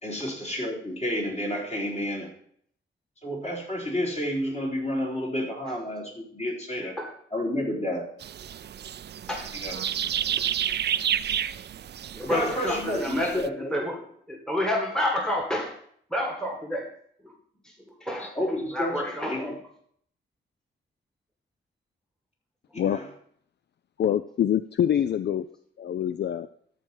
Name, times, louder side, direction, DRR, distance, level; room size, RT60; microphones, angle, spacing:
voice 1, 0.0-2.3 3.2-6.9 7.3-8.1 9.6-9.8 12.2-13.9 18.2-19.6 22.9-23.0, equal, 35° left, -4 dB, 4.2 m, -30 dB
voice 2, 6.8-7.1 9.3-9.5 12.1-15.8 16.1-16.9 17.2-17.3 18.0-19.5, left 1 dB, 5° left, 1 dB, 1.8 m, -29 dB
sound 1, 8.2-13.5, right 9 dB, 60° right, 0.4 m, -30 dB
voice 3, 24.0-25.5 25.8-26.5, left 10 dB, 60° left, 12 dB, 0.4 m, -25 dB
13.5 x 4.6 x 5.5 m, 0.64 s
cardioid pair, 95°, 20 cm